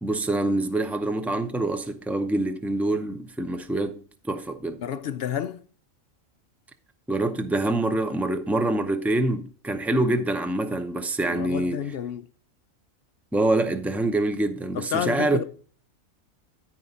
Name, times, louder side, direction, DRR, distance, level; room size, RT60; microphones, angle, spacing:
voice 1, 0.0-4.8 7.1-11.8 13.3-15.4, right 2 dB, ahead, 0.3 m, -25 dB
voice 2, 4.8-5.6 11.3-12.3 14.7-15.4, left 8 dB, 60° left, 0.6 m, -30 dB
13.0 x 4.7 x 4.1 m
omnidirectional pair, 1.4 m